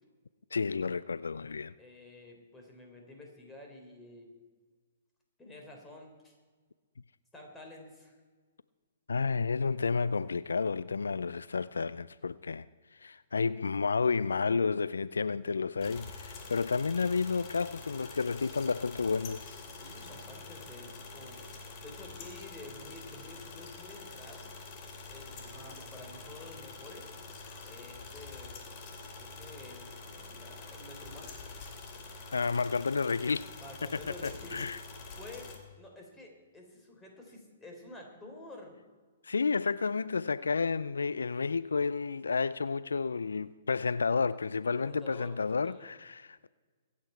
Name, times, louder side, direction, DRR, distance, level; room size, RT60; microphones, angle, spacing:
voice 1, 0.5-1.7 9.1-12.7 13.0-19.5 32.3-33.6 34.2-34.8 39.2-46.5, left 4 dB, 80° left, 0.3 m, -31 dB
voice 2, 1.8-4.3 5.4-6.4 7.3-8.1 19.8-21.4 21.8-24.5 25.1-27.1 27.6-28.6 29.2-31.4 33.6-34.6 35.2-35.5 35.8-38.8 44.7-45.9, left 2 dB, 10° left, 3.8 m, -50 dB
sound 1, 15.8-35.6, left 3 dB, 35° left, 2.6 m, -46 dB
Laughter, 19.6-23.8 25.4-28.4 28.7-28.8, right 2 dB, 15° right, 2.7 m, -60 dB
24.5 x 8.6 x 4.5 m
figure-of-eight pair, 120°, 0 cm